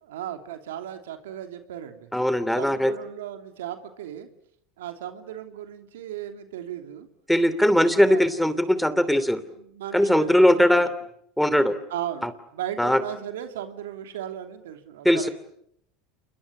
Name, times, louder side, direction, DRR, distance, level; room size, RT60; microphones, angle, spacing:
voice 1, 0.0-2.1 2.6-4.3 4.8-7.1 7.6-8.3 9.3-10.9 11.9-15.3, right 11 dB, 85° right, 7 dB, 3.0 m, -36 dB
voice 2, 2.1-2.9 7.3-9.4 9.9-10.9 11.4-11.7 12.2-12.3 12.8-13.0 15.0-15.3, equal, ahead, 14 dB, 2.8 m, -20 dB
28.5 x 22.5 x 8.8 m, 0.73 s
hypercardioid pair, 100°, 0 cm